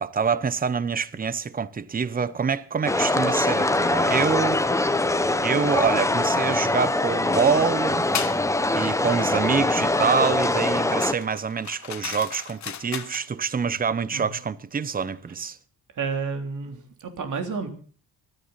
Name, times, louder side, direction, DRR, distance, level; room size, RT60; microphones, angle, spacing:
voice 1, 0.0-4.6 5.4-8.0 8.7-15.6, right 6 dB, 25° right, 0.8 m, -26 dB
sound 1, 2.9-11.1, left 2 dB, 10° left, 0.8 m, -23 dB
sound 2, 8.1-8.4 11.0-13.3, left 8 dB, 50° left, 1.2 m, -34 dB
voice 2, 15.9-17.7, right 5 dB, 50° right, 3.4 m, -30 dB
25.5 x 10.0 x 4.1 m
cardioid pair, 125°, 38 cm